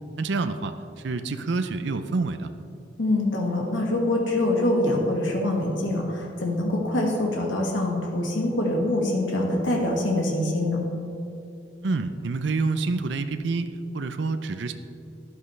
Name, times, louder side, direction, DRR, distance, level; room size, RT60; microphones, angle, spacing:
voice 1, 0.2-0.7 1.0-2.5 11.8-13.7 13.9-14.7, right 3 dB, 70° right, 9 dB, 0.5 m, -27 dB
voice 2, 3.0-10.8, left 1 dB, 90° left, -1 dB, 1.7 m, -24 dB
13.0 x 11.0 x 3.3 m, 2.7 s
head